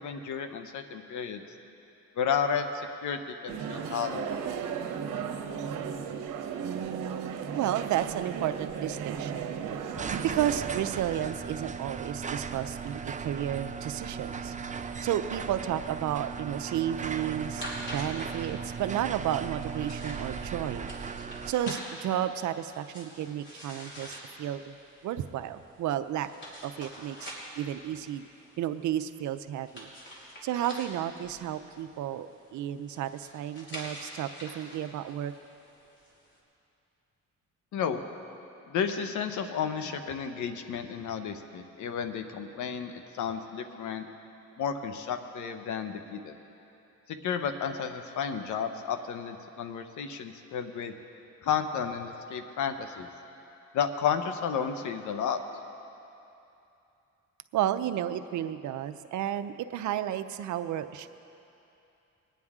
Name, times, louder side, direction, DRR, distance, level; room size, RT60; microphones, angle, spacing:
voice 1, 0.0-1.4 2.2-2.7 3.0-4.3 37.7-38.0 38.7-44.1 44.6-46.3 47.1-50.9 51.4-53.1 53.7-55.4, left 7 dB, 75° left, 7 dB, 1.0 m, -32 dB
sound 1, 3.5-11.0, right 7 dB, 90° right, 1.0 m, -35 dB
voice 2, 6.6-9.8 10.2-14.5 15.0-17.7 17.9-20.9 21.5-24.8 25.0-26.3 26.6-28.2 28.6-29.9 30.4-35.3 57.5-61.1, right 11 dB, 75° right, 11 dB, 0.6 m, -32 dB
sound 2, 7.9-21.5, right 5 dB, 25° right, 0.5 m, -38 dB
sound 3, 17.4-36.4, equal, 40° left, 3.3 m, -46 dB
21.5 x 9.4 x 3.7 m, 2.8 s
cardioid pair, 90°, 30 cm